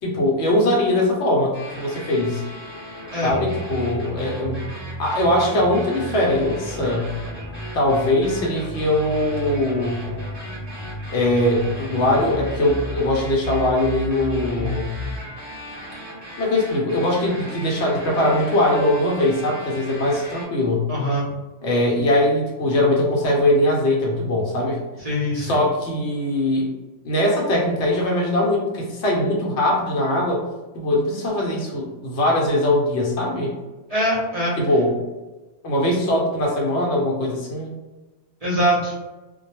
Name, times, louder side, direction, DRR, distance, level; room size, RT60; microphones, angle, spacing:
voice 1, 0.0-2.4 3.2-4.6 5.0-7.1 7.7-10.0 11.1-14.9 16.4-20.9 21.6-24.8 25.3-26.7 27.0-30.4 30.7-33.6 34.6-35.0 35.6-37.7, left 1 dB, 65° left, -2 dB, 0.9 m, -21 dB
sound 1, 1.5-20.5, equal, 10° left, 1.0 m, -38 dB
sound 2, 3.3-15.2, equal, 25° left, 0.4 m, -33 dB
voice 2, 20.9-21.3 25.0-25.6 33.9-34.6 38.4-38.9, equal, 35° right, -7 dB, 0.6 m, -22 dB
2.2 x 2.1 x 2.9 m, 1.1 s
omnidirectional pair, 1.3 m